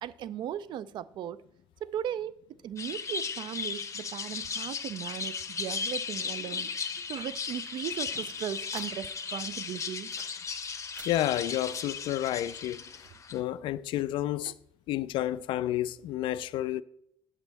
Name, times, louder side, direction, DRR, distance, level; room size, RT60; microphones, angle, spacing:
voice 1, 0.0-1.4 1.8-2.4 2.6-6.8 7.1-10.1 14.5-14.6, right 10 dB, 50° right, 0.4 m, -37 dB
sound 1, 2.8-13.4, left 5 dB, 30° left, 0.8 m, -36 dB
sound 2, 6.8-9.3 9.7-10.4 10.7-11.2, right 3 dB, 80° right, 1.1 m, -53 dB
voice 2, 11.1-13.1 13.3-14.5 14.9-16.8, left 13 dB, 55° left, 0.3 m, -30 dB
9.2 x 7.8 x 4.1 m
figure-of-eight pair, 45°, 10 cm